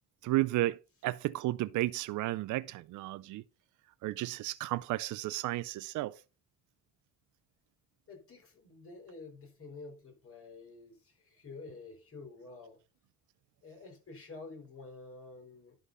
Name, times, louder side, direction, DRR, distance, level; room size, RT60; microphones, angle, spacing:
voice 1, 0.2-3.4 4.0-6.2, right 17 dB, 75° right, 0.5 m, -33 dB
voice 2, 8.1-12.8 13.6-15.8, left 3 dB, 45° left, 4.5 m, -49 dB
11.0 x 4.0 x 5.5 m
cardioid pair, 90°, 30 cm